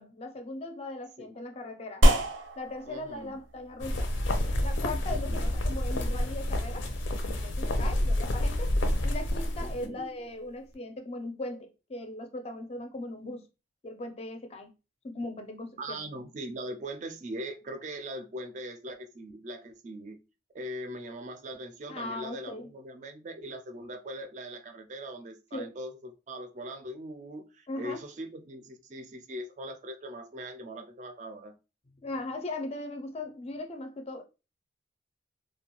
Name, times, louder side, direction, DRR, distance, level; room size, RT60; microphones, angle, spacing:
voice 1, 0.0-2.1 2.6-4.1 4.6-8.7 9.0-13.5 13.8-14.7 15.0-16.0 21.9-22.7 25.5-25.7 27.7-28.0 32.0-34.2, left 2 dB, 35° left, 0.4 m, -39 dB
sound 1, 2.0-10.7, equal, 90° right, 0.5 m, -31 dB
voice 2, 2.9-3.4 5.1-5.5 7.8-7.9 9.6-10.2 15.8-20.2 20.5-31.6, right 1 dB, 40° right, 0.4 m, -41 dB
sound 2, 3.8-9.9, left 1 dB, 90° left, 0.5 m, -29 dB
2.4 x 2.2 x 2.9 m
head